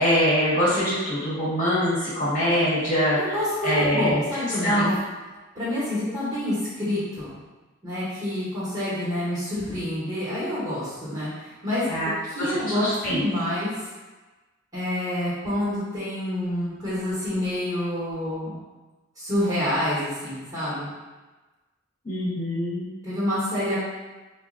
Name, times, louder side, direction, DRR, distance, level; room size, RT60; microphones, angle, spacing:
voice 1, 0.0-3.3 3.6-4.3 4.6-5.0 11.9-12.1 12.4-13.2 22.0-22.9, equal, 40° left, -9 dB, 1.1 m, -23 dB
voice 2, 3.2-4.9 5.5-7.3 7.8-11.9 12.3-13.9 14.7-18.5 19.1-20.9 23.0-23.8, left 1 dB, 15° right, -11 dB, 1.0 m, -27 dB
3.7 x 2.0 x 2.6 m, 1.2 s
head